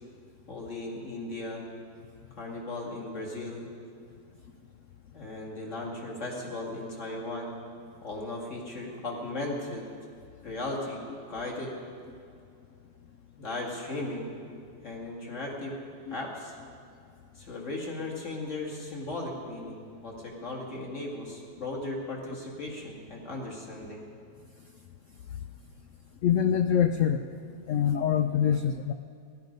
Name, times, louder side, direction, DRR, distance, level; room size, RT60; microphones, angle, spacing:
voice 1, 0.5-1.6 2.4-3.7 5.1-7.5 8.0-9.8 10.4-11.0 11.3-11.7 13.4-14.3 14.8-15.8 16.1-16.6 17.3-24.0, left 2 dB, 40° left, -3 dB, 2.5 m, -36 dB
voice 2, 26.2-27.2 27.7-28.9, left 8 dB, 90° left, 7 dB, 0.6 m, -24 dB
17.5 x 12.5 x 5.3 m, 2.3 s
omnidirectional pair, 1.9 m